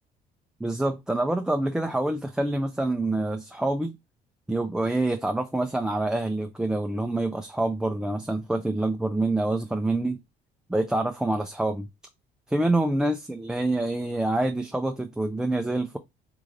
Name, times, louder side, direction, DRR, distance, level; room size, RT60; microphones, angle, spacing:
voice 1, 0.6-3.9 4.5-10.2 10.7-11.9 12.5-16.0, right 2 dB, 5° right, 0.3 m, -26 dB
3.7 x 3.2 x 2.5 m
cardioid pair, 110°, 17 cm